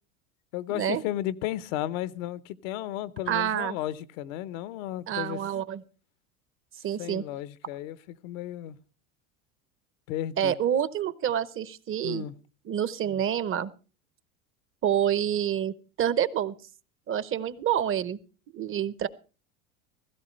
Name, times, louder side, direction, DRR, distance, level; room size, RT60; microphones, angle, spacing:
voice 1, 0.5-5.4 7.0-8.0 8.2-8.8 10.1-10.6 12.0-12.3, left 13 dB, 70° left, 0.9 m, -34 dB
voice 2, 3.3-3.8 5.1-5.8 6.8-7.3 10.4-12.2 12.6-13.7 14.8-16.5 17.1-18.2 18.5-19.1, right 10 dB, 30° right, 0.8 m, -27 dB
16.5 x 15.0 x 3.2 m
supercardioid pair, 100°, 41 cm